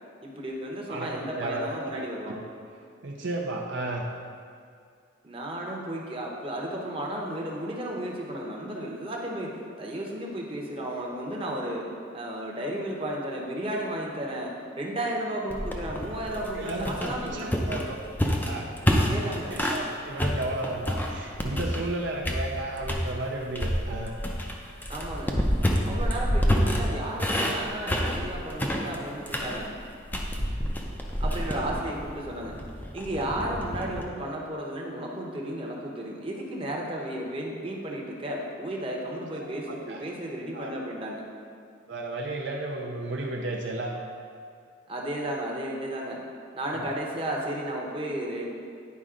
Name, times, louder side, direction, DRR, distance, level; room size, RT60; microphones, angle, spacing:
voice 1, 0.2-2.4 5.2-11.9 12.1-17.7 19.0-19.6 24.9-25.3 25.9-29.7 31.2-32.5 32.9-41.2 44.9-46.2 46.5-48.5, right 1 dB, 25° right, -2 dB, 0.9 m, -33 dB
voice 2, 0.9-2.4 3.0-4.1 16.3-18.0 18.4-18.7 19.5-24.1 25.9-26.3 30.3-30.5 39.1-40.0 40.5-40.7 41.9-44.0 46.7-46.9, right 2 dB, 60° right, -1 dB, 0.6 m, -34 dB
sound 1, 15.5-19.9 20.2-21.9 22.2-23.1 23.5-34.0, equal, 10° left, 0.5 m, -28 dB
9.6 x 5.2 x 3.8 m, 2.3 s
head